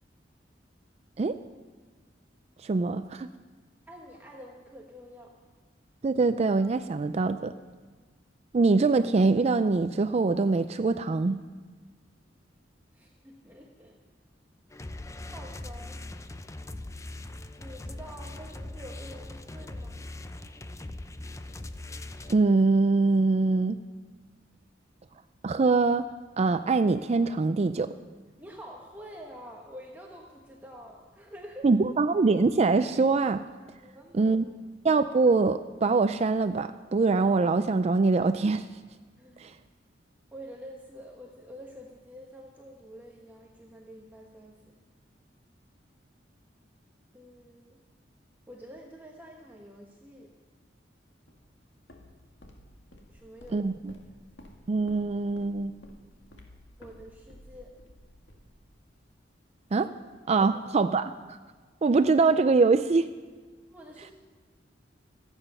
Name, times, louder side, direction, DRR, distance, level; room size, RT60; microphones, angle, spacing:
voice 1, 2.6-3.3 6.0-7.5 8.5-11.4 22.3-23.8 25.4-26.1 26.4-27.9 31.6-33.4 34.1-34.5 34.8-38.7 39.4-39.5 53.5-53.9 54.7-55.8 59.7-59.9 60.3-61.4 61.8-63.1, right 3 dB, 35° right, 11 dB, 0.4 m, -23 dB
voice 2, 3.9-5.3 12.9-14.0 15.3-16.0 17.6-20.0 28.4-31.7 33.8-34.3 39.2-39.4 40.3-44.7 47.1-47.8 48.5-50.3 53.1-53.8 56.8-57.8 63.7-64.1, equal, 10° right, -1 dB, 1.2 m, -47 dB
sound 1, 14.7-22.4, left 2 dB, 15° left, 0.6 m, -41 dB
Walk footsteps, 51.3-59.2, left 1 dB, 80° left, 2.0 m, -53 dB
25.5 x 9.0 x 5.6 m, 1.4 s
head